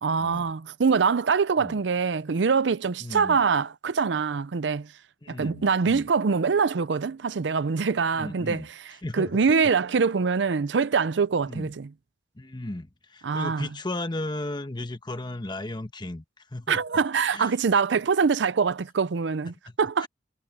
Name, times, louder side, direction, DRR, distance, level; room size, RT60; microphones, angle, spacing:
voice 1, 0.0-4.9 5.3-8.7 9.1-11.9 13.2-13.7 16.7-20.1, right 5 dB, 70° right, 0.5 m, -24 dB
voice 2, 3.0-3.4 5.2-6.1 8.2-8.7 9.0-9.5 11.5-11.7 12.4-16.2 16.5-16.8 17.3-17.5 19.7-19.8 20.0-20.1, left 1 dB, 25° left, 1.2 m, -35 dB
head